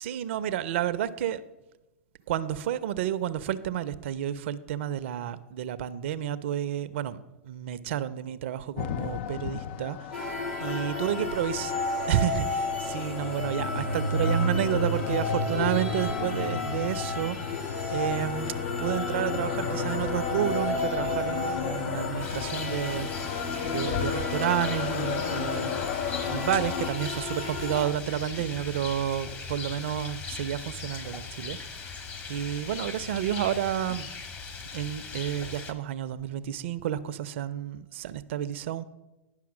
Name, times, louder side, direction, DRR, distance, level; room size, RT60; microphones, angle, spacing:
voice 1, 0.0-1.5 2.3-10.3 10.6-11.8 12.1-17.4 17.9-23.2 23.6-25.8 26.3-31.6 32.3-34.1 34.7-38.8, right 11 dB, 60° right, 15 dB, 0.5 m, -30 dB
sound 1, 8.8-26.9, left 11 dB, 55° left, 0.4 m, -36 dB
sound 2, 10.1-27.8, left 2 dB, 80° left, 3.1 m, -32 dB
Rain, 22.2-35.7, left 5 dB, 30° left, 1.2 m, -39 dB
10.5 x 5.9 x 5.9 m, 1.1 s
hypercardioid pair, 100°, 7 cm